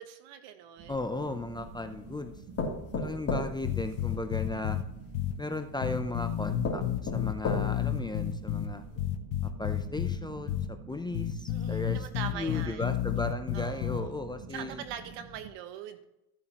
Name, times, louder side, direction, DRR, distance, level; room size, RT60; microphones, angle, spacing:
voice 1, 0.0-1.0 11.5-12.9 13.5-14.1 14.5-16.0, right 10 dB, 70° right, 9 dB, 1.4 m, -42 dB
sound 1, 0.8-15.5, right 4 dB, 45° right, 1.5 m, -47 dB
sound 2, 0.9-1.8 2.6-4.5 5.5-5.6 6.2-6.3 6.6-8.0 8.5-8.6 8.9-9.0, left 3 dB, 30° left, 3.0 m, -34 dB
voice 2, 0.9-2.3 2.9-4.8 5.4-8.8 9.6-10.6 10.9-12.0 12.3-14.8, left 2 dB, 10° left, 7 dB, 0.5 m, -36 dB
sound 3, 3.6-4.8 5.1-5.3 5.8-8.7 9.0-10.2 10.5-10.6 11.1-14.0, left 12 dB, 60° left, 1.2 m, -30 dB
14.5 x 8.4 x 3.0 m, 0.88 s
supercardioid pair, 110°, 45 cm